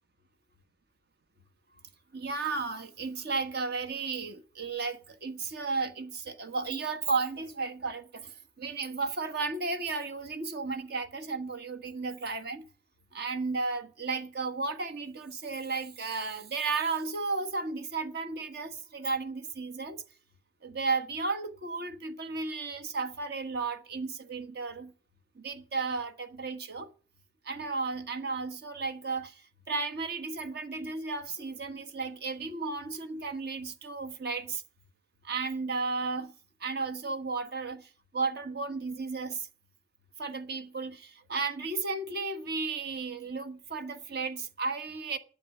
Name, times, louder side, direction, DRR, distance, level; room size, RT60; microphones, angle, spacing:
voice 1, 2.1-12.6 13.1-20.0 20.6-24.9 25.3-26.9 27.4-34.6 35.2-36.3 36.6-39.5 40.2-45.2, right 4 dB, 55° right, 1.5 m, -34 dB
11.5 x 7.7 x 8.6 m
head